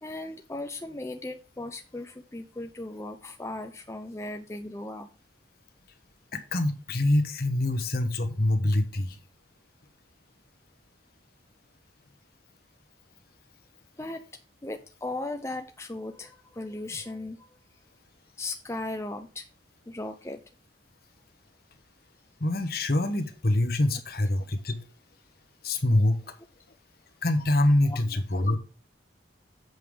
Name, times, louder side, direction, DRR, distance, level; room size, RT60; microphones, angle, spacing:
voice 1, 0.0-5.1 14.0-14.2 14.6-17.5 18.4-19.5 19.9-20.4 27.9-28.2, left 2 dB, 15° left, 5 dB, 0.5 m, -37 dB
voice 2, 6.3-9.2 22.4-24.8 25.6-26.2 27.2-28.6, left 1 dB, 55° left, 7 dB, 1.2 m, -25 dB
8.0 x 5.5 x 5.0 m, 0.36 s
head